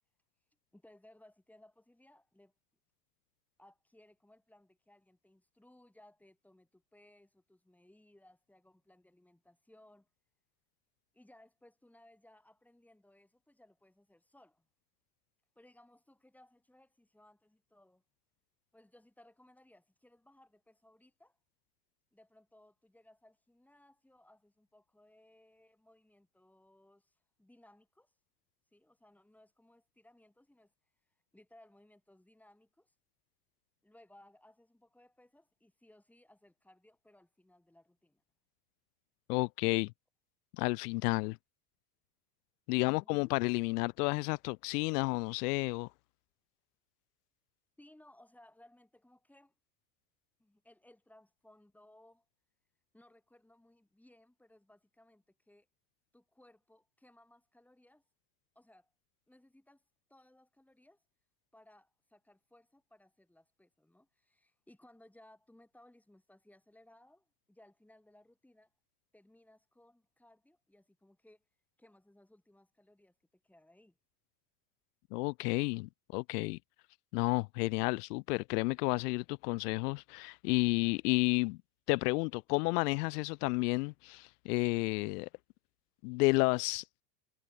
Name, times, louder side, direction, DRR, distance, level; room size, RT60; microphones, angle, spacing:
voice 1, 0.7-2.5 3.6-10.1 11.1-14.7 15.5-18.0 18.7-21.4 22.1-28.1 28.7-30.7 31.3-32.9 33.8-38.2 47.8-49.5 50.4-52.2 52.9-55.7 56.1-58.0 58.5-58.9 59.3-59.8 60.1-61.0 61.5-68.7 69.1-71.4 71.8-74.0, left 1 dB, 5° left, 5.1 m, -63 dB
voice 2, 39.3-39.9 40.5-41.4 42.7-45.9 75.1-76.6 77.1-81.6 81.9-85.3 86.0-86.8, left 26 dB, 75° left, 0.6 m, -31 dB
supercardioid pair, 135°, 47 cm